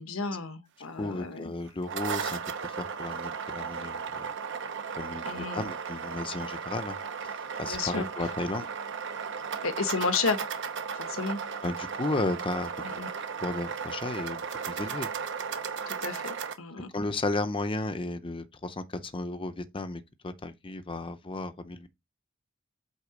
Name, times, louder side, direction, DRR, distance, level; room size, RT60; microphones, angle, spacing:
voice 1, 0.0-1.5 5.2-5.7 7.7-8.1 9.6-10.4 10.9-11.4 12.8-13.1 15.9-17.1, left 4 dB, 80° left, 1.2 m, -32 dB
voice 2, 1.0-4.3 5.0-7.0 7.6-8.7 11.6-13.0 13.4-15.1 16.9-21.9, left 2 dB, 25° left, 0.7 m, -34 dB
sound 1, 1.7-16.5, right 6 dB, 65° right, 0.9 m, -35 dB
8.3 x 3.8 x 5.0 m
head